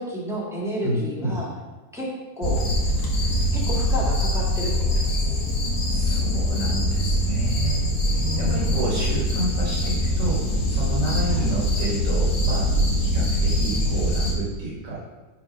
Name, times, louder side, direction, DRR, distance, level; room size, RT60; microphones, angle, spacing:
voice 1, 0.0-1.5 1.9-2.1 2.4-2.7 3.5-5.4 8.1-8.7 11.3-11.5, equal, ahead, -5 dB, 1.3 m, -31 dB
voice 2, 0.8-1.3 5.9-12.7 13.0-15.0, right 2 dB, 70° right, -7 dB, 2.5 m, -30 dB
sound 1, 2.4-14.3, equal, 85° left, 2.0 m, -23 dB
6.1 x 4.6 x 5.1 m, 1.2 s
omnidirectional pair, 2.0 m